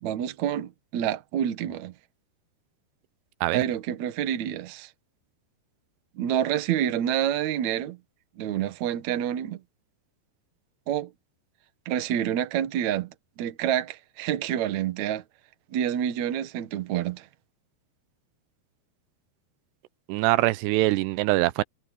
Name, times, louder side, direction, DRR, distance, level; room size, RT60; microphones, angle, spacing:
voice 1, 0.0-1.9 3.5-4.9 6.2-8.0 8.4-9.6 10.9-11.1 11.9-15.2 15.7-17.3, right 10 dB, 60° right, 2.1 m, -28 dB
voice 2, 20.1-21.6, right 18 dB, 85° right, 2.8 m, -23 dB
omnidirectional pair, 4.8 m